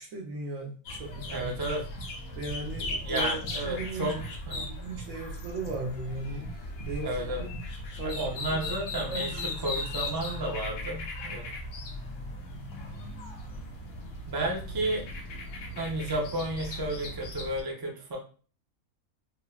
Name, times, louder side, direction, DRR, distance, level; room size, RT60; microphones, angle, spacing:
voice 1, 0.0-1.5 2.4-4.2 4.5-7.5 8.0-8.2 8.5-8.6 9.0-9.6, right 2 dB, 75° right, -1 dB, 1.2 m, -37 dB
sound 1, 0.9-17.6, left 1 dB, 80° left, 1.0 m, -37 dB
voice 2, 1.3-1.8 3.0-4.2 4.5-4.7 7.0-7.4 8.0-11.5 14.3-15.0 15.8-18.2, right 1 dB, 35° right, -1 dB, 0.3 m, -32 dB
3.3 x 2.1 x 2.4 m, 0.40 s
omnidirectional pair, 1.5 m